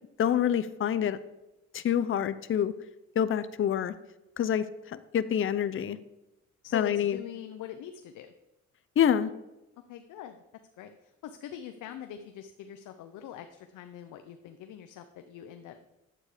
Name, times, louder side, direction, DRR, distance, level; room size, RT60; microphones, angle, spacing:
voice 1, 0.2-1.2 1.7-2.7 3.2-3.9 4.4-6.0 6.7-7.2 9.0-9.3, left 9 dB, 45° left, 13 dB, 0.6 m, -27 dB
voice 2, 6.6-8.3 9.9-10.4 10.8-15.9, left 10 dB, 85° left, 7 dB, 0.8 m, -43 dB
9.9 x 8.1 x 5.0 m, 0.95 s
cardioid pair, 90°, 30 cm